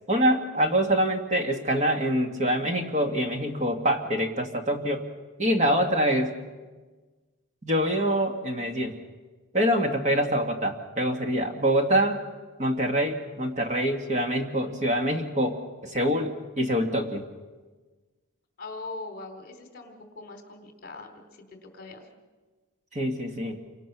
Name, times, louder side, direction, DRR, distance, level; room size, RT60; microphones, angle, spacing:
voice 1, 0.1-5.0 5.4-6.3 7.6-9.0 9.5-12.2 12.6-17.3 22.9-23.6, equal, 30° right, 3 dB, 2.1 m, -25 dB
voice 2, 18.6-22.1, left 3 dB, 40° left, 4 dB, 3.3 m, -41 dB
29.0 x 24.5 x 6.2 m, 1.3 s
head